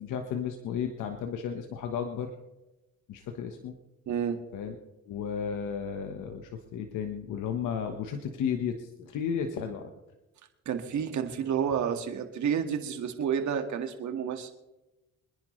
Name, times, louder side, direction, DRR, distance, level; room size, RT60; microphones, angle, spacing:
voice 1, 0.0-2.3 3.1-3.7 4.5-4.7 5.1-9.9, left 7 dB, 85° left, 5 dB, 1.4 m, -33 dB
voice 2, 4.1-4.4 10.7-14.5, right 8 dB, 70° right, 6 dB, 2.0 m, -30 dB
25.0 x 10.5 x 3.3 m, 1.0 s
cardioid pair, 90°, 30 cm